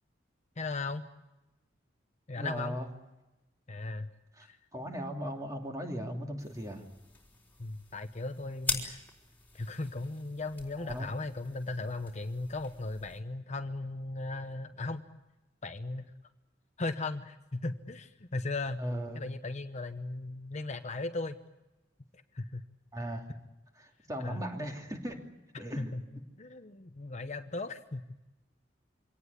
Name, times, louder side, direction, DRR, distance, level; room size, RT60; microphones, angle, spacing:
voice 1, 0.6-1.1 2.3-2.8 3.7-4.1 4.4-4.6 7.6-9.0 9.5-15.0 15.6-16.1 16.8-18.8 19.1-21.4 22.1-22.6 24.2-24.4 25.8-26.0 26.4-28.2, left 2 dB, 40° left, 8 dB, 0.9 m, -37 dB
voice 2, 2.4-2.9 4.4-4.5 4.7-6.8 10.8-11.1 18.8-19.2 22.9-23.2 23.8-25.2 25.6-25.9, equal, 20° right, 2 dB, 2.8 m, -37 dB
sound 1, 6.4-13.2, left 4 dB, 10° left, 3.9 m, -42 dB
24.0 x 18.0 x 9.6 m, 1.0 s
head